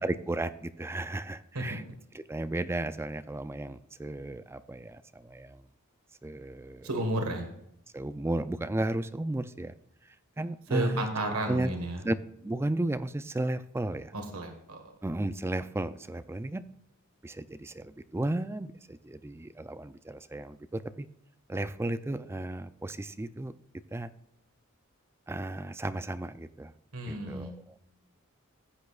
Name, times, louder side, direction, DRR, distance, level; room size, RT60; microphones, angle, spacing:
voice 1, 0.0-1.8 2.1-5.7 6.2-6.9 7.9-9.7 10.0-11.1 11.5-11.7 12.0-12.2 12.4-14.1 15.0-16.6 17.2-21.1 21.5-23.5 23.9-24.1 25.3-26.7 27.1-27.8, right 1 dB, 10° right, 12 dB, 0.4 m, -34 dB
voice 2, 6.8-7.5 10.7-12.0 14.1-14.8 26.9-27.5, right 1 dB, 85° right, 4 dB, 1.6 m, -32 dB
15.0 x 8.3 x 2.4 m, 0.77 s
head